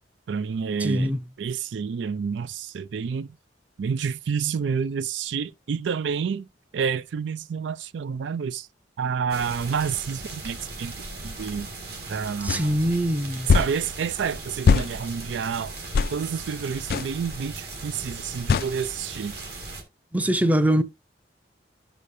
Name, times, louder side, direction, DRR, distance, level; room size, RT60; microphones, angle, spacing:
voice 1, 0.3-1.1 1.4-3.3 3.8-6.5 6.7-8.7 9.0-10.9 11.2-11.7 12.1-12.8 13.5-15.7 16.1-19.3, right 6 dB, 80° right, 0.4 m, -29 dB
voice 2, 0.8-1.2 12.4-13.5 20.1-20.8, equal, 10° right, 0.5 m, -23 dB
sound 1, 9.3-19.8, right 3 dB, 60° right, 1.7 m, -38 dB
sound 2, 12.5-12.6 13.5-13.7 14.7-14.9 15.9-16.1 16.9-17.1 18.5-18.7, left 5 dB, 55° left, 0.3 m, -20 dB
12.0 x 5.0 x 2.6 m
head